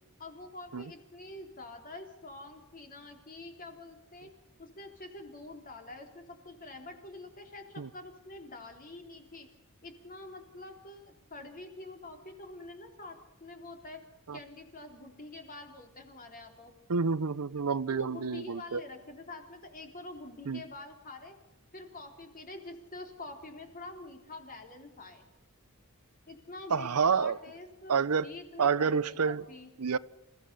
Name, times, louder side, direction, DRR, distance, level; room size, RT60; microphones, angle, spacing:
voice 1, 0.2-4.3 4.6-9.5 9.8-14.0 14.3-16.7 17.9-21.4 21.7-25.3 26.3-27.9 28.2-29.7, left 2 dB, 40° left, 4 dB, 3.6 m, -46 dB
voice 2, 16.9-18.8 20.5-20.6 26.7-27.4 27.9-28.3 28.6-29.4 29.8-30.0, right 5 dB, 85° right, 17 dB, 0.7 m, -28 dB
28.5 x 16.0 x 6.8 m, 1.0 s
head